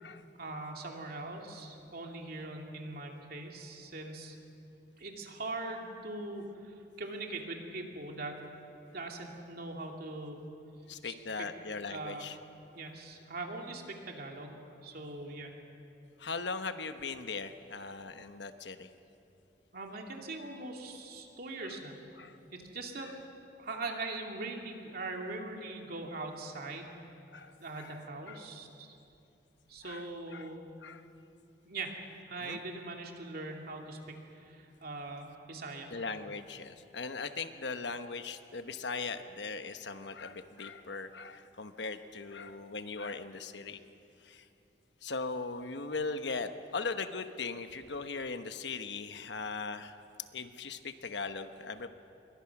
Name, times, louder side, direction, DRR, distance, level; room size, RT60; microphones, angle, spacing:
voice 1, 0.3-4.4 5.0-8.4 8.9-10.4 11.0-11.1 11.9-12.3 12.7-14.6 14.8-15.5 19.7-22.0 22.5-23.1 23.6-27.0 27.6-29.0 29.7-30.7 31.6-31.9 32.3-35.9, right 2 dB, 55° right, 2 dB, 2.8 m, -41 dB
voice 2, 10.9-12.4 16.2-18.9 21.6-21.8 22.2-22.4 27.3-27.9 28.3-28.4 29.8-30.1 30.3-30.5 30.8-31.0 32.4-32.6 35.9-43.8 44.2-44.4 45.0-49.9 50.3-51.9, left 4 dB, 70° left, 9 dB, 1.1 m, -39 dB
27.0 x 23.0 x 6.0 m, 2.7 s
head